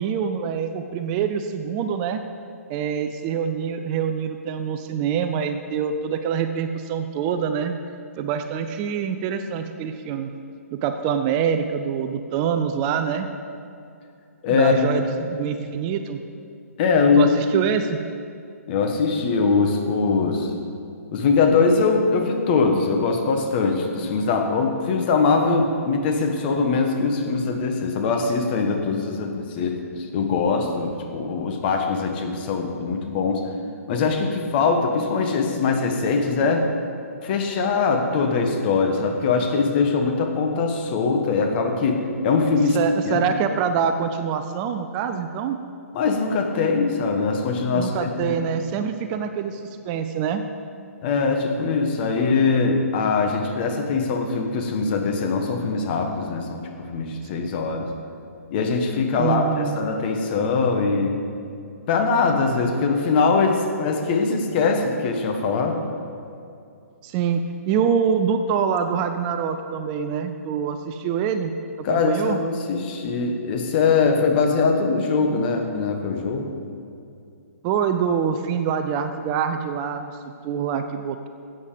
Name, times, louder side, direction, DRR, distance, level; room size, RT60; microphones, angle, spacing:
voice 1, 0.0-2.2 2.7-7.8 8.2-10.3 10.7-13.3 14.5-16.2 17.1-18.0 42.7-45.6 47.7-50.4 59.2-59.8 64.3-64.4 67.0-71.5 71.8-72.4 77.6-81.3, right 7 dB, 30° right, 8 dB, 0.6 m, -25 dB
voice 2, 14.4-14.8 16.8-17.3 18.7-20.5 21.1-33.4 33.9-36.7 37.2-43.2 45.9-48.4 51.0-56.6 56.9-57.9 58.5-61.2 61.9-65.8 71.8-76.5, left 4 dB, 40° left, 3 dB, 1.5 m, -22 dB
14.0 x 8.3 x 5.1 m, 2.5 s
hypercardioid pair, 145°, 8 cm